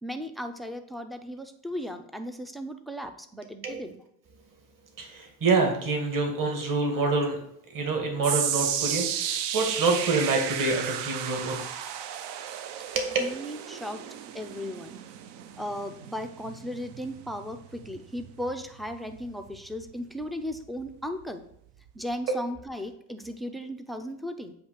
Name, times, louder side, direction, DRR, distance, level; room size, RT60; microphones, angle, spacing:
voice 1, 0.0-4.0 13.2-14.1 14.3-15.0 15.6-21.5 21.9-24.5, equal, ahead, 8 dB, 0.4 m, -36 dB
voice 2, 5.0-7.4 7.7-11.6 12.9-13.2, right 3 dB, 40° right, 3 dB, 1.9 m, -26 dB
sound 1, 8.2-20.6 20.9-21.2 21.9-22.0, right 9 dB, 60° right, 0.7 m, -34 dB
8.0 x 2.9 x 5.6 m, 0.72 s
supercardioid pair, 95°, 49 cm